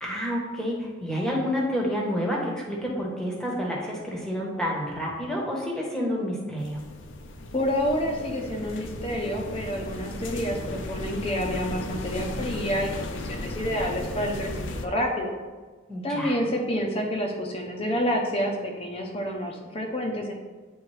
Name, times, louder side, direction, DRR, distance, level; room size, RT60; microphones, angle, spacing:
voice 1, 0.0-6.8 15.9-16.4, equal, 5° left, -3 dB, 1.0 m, -29 dB
sound 1, 6.6-14.9, left 1 dB, 85° left, 0.6 m, -35 dB
voice 2, 7.5-15.3 16.0-20.3, equal, 30° left, 1 dB, 0.6 m, -28 dB
8.6 x 3.5 x 3.2 m, 1.4 s
head